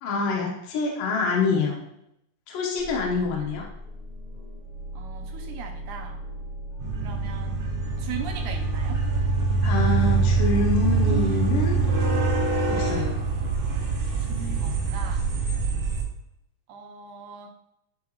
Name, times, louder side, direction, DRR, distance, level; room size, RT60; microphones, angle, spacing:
voice 1, 0.0-1.8 2.5-3.6 9.6-11.8 12.8-13.1, left 3 dB, 70° left, -1 dB, 2.4 m, -26 dB
sound 1, 2.8-10.2, right 1 dB, 40° left, 2.9 m, -38 dB
voice 2, 3.2-3.6 4.9-6.2 7.0-7.6 8.0-9.0 14.2-15.3 16.7-17.5, right 6 dB, 75° right, 3 dB, 2.0 m, -39 dB
sound 2, 6.8-16.0, right 4 dB, 55° right, 2.2 m, -24 dB
9.5 x 4.5 x 2.4 m, 0.80 s
omnidirectional pair, 4.1 m